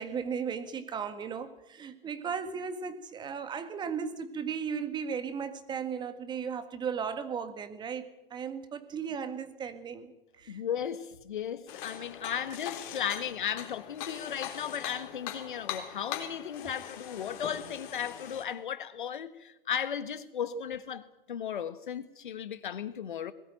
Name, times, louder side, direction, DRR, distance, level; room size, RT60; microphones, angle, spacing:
voice 1, 0.0-10.6 20.5-20.6, right 6 dB, 15° right, 1.7 m, -36 dB
voice 2, 10.5-21.0 21.3-23.3, left 8 dB, 55° left, 1.6 m, -35 dB
sound 1, 11.7-18.4, left 10 dB, 35° left, 3.9 m, -41 dB
21.0 x 18.0 x 9.0 m
figure-of-eight pair, 115°, 29 cm